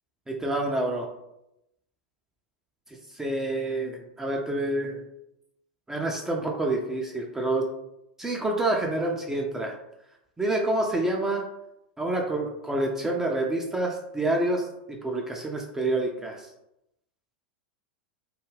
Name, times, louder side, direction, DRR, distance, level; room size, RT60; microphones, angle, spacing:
voice 1, 0.3-1.1 3.1-5.0 5.9-7.6 8.2-9.7 10.4-11.4 12.0-16.5, right 2 dB, 10° right, 0 dB, 0.3 m, -28 dB
2.3 x 2.1 x 3.2 m, 0.86 s
figure-of-eight pair, 90°, 5 cm